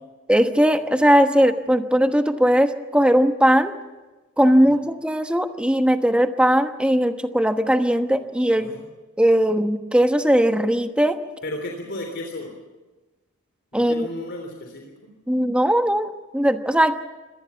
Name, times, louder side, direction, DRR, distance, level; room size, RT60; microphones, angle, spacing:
voice 1, 0.3-3.7 4.4-8.7 9.2-11.2 13.7-14.1 15.3-17.0, equal, 5° right, 7 dB, 1.1 m, -19 dB
voice 2, 11.4-12.5 13.7-14.9, left 1 dB, 55° left, 2 dB, 3.4 m, -33 dB
25.0 x 18.5 x 7.1 m, 1.2 s
head